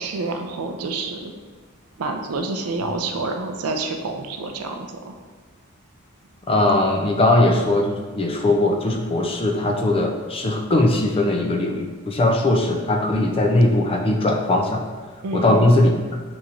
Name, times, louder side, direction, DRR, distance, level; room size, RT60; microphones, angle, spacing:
voice 1, 0.0-1.3 2.0-5.2 15.2-15.8, right 3 dB, 85° right, 5 dB, 0.4 m, -28 dB
voice 2, 6.5-14.8 15.3-15.9, left 2 dB, 25° left, 2 dB, 0.4 m, -19 dB
5.3 x 2.9 x 2.5 m, 1.4 s
head